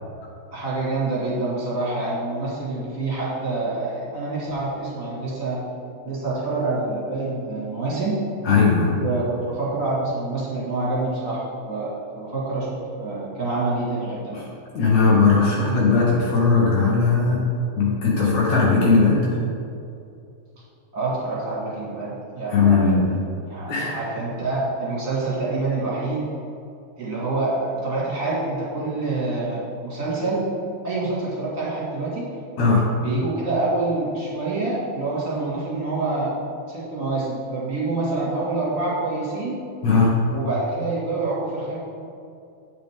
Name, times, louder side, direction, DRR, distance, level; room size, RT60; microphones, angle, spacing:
voice 1, 0.5-5.6 6.0-8.2 9.0-14.3 20.9-23.0 23.5-26.3 27.0-30.5 30.8-32.3 33.0-36.4 36.7-39.6 40.3-41.8, right 2 dB, 30° right, -8 dB, 2.1 m, -26 dB
voice 2, 8.5-8.9 14.3-14.4 14.7-17.4 17.7-19.2 22.5-23.1 23.7-23.9 32.6-32.8 39.8-40.1, left 4 dB, 70° left, -4 dB, 2.3 m, -18 dB
8.6 x 6.6 x 3.6 m, 2.5 s
omnidirectional pair, 3.5 m